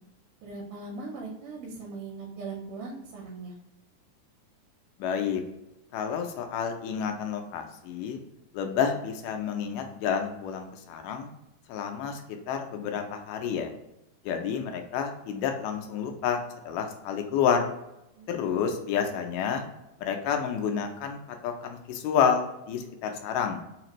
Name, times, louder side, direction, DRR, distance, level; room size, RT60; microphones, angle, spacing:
voice 1, 0.4-3.5 18.2-18.6 18.9-19.1, right 3 dB, 80° right, -2 dB, 2.2 m, -40 dB
voice 2, 5.0-5.4 5.9-8.2 8.5-11.3 11.7-12.2 12.5-13.7 14.3-16.4 16.7-17.7 18.3-19.6 20.0-23.6, left 7 dB, 85° left, 4 dB, 2.2 m, -29 dB
5.1 x 2.5 x 3.0 m, 0.87 s
omnidirectional pair, 3.6 m